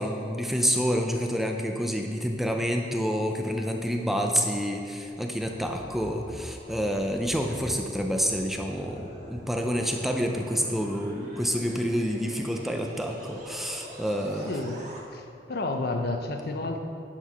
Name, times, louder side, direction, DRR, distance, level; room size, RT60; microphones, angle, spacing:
voice 1, 0.0-14.5, equal, ahead, 2 dB, 0.5 m, -28 dB
sound 1, 5.3-15.0, equal, 45° right, 1.3 m, -44 dB
voice 2, 14.4-14.8 15.1-16.8, left 2 dB, 60° left, 5 dB, 0.7 m, -31 dB
10.0 x 4.6 x 5.8 m, 2.6 s
head